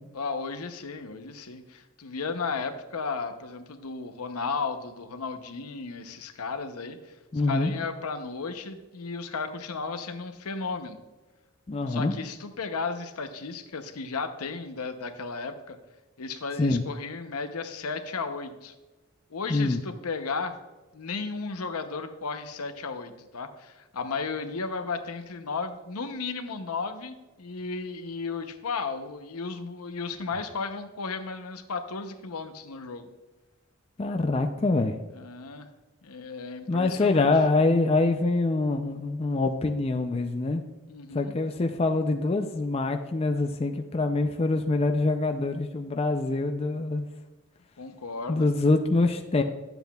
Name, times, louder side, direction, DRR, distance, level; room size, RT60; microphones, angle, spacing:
voice 1, 0.1-7.2 7.5-11.0 11.9-15.8 16.2-18.7 19.3-20.6 20.9-33.1 35.1-35.7 36.0-37.3 40.9-41.3 47.8-48.5, left 4 dB, 85° left, 7 dB, 0.8 m, -34 dB
voice 2, 7.3-7.7 11.7-12.1 16.6-16.8 19.5-19.8 34.0-34.9 36.7-40.6 41.1-47.1 48.3-49.4, left 3 dB, 25° left, 6 dB, 0.4 m, -25 dB
12.0 x 7.9 x 2.3 m, 1.2 s
head